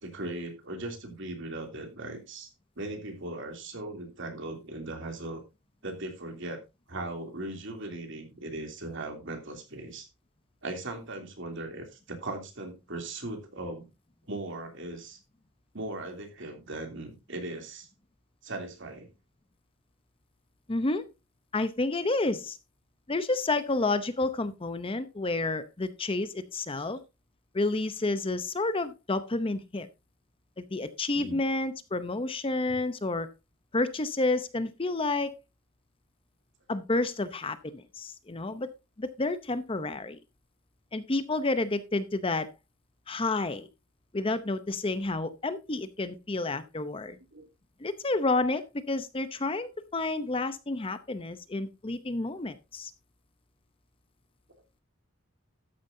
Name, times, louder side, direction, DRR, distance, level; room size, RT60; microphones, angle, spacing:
voice 1, 0.0-2.5 2.8-5.4 5.8-6.6 6.9-10.1 10.6-13.9 14.3-15.2 15.7-17.9 18.4-19.1 26.8-26.9 31.1-31.4 47.3-47.5, right 2 dB, 60° right, 4 dB, 2.9 m, -38 dB
voice 2, 20.7-21.1 21.5-22.6 23.1-27.0 27.5-29.9 30.6-33.3 33.7-35.3 36.7-38.7 39.0-40.2 40.9-42.5 43.1-43.7 44.1-47.2 47.8-52.9, left 2 dB, 25° left, 12 dB, 0.7 m, -30 dB
13.0 x 9.4 x 2.7 m, 0.24 s
head